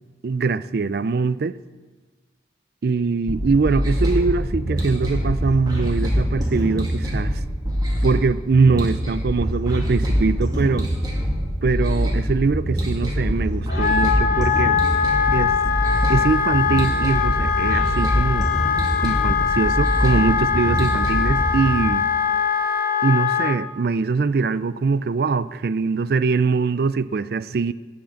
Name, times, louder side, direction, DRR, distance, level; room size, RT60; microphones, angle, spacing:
voice 1, 0.2-1.6 2.8-7.4 8.0-10.9 11.6-14.8 15.3-15.6 16.1-18.5 19.0-22.1 23.0-27.7, right 4 dB, 55° right, 16 dB, 0.4 m, -22 dB
sound 1, 3.3-21.7, equal, 20° right, 2.5 m, -24 dB
Wind instrument woodwind instrument, 13.7-23.6, left 7 dB, 50° left, 0.8 m, -22 dB
17.5 x 5.9 x 7.1 m, 1.3 s
head